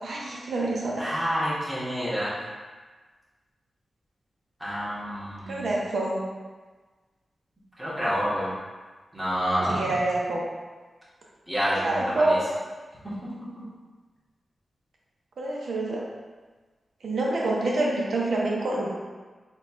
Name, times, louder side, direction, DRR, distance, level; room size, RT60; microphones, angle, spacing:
voice 1, 0.0-1.1 5.5-6.2 9.7-10.4 11.7-12.4 15.4-16.0 17.0-18.9, right 2 dB, 85° right, -3 dB, 0.7 m, -26 dB
voice 2, 1.0-2.3 4.6-5.7 7.8-8.5 9.1-9.8 11.5-12.4 13.0-13.1, equal, 5° right, -9 dB, 1.4 m, -28 dB
4.3 x 2.4 x 4.3 m, 1.4 s
wide cardioid pair, 125°, 0 cm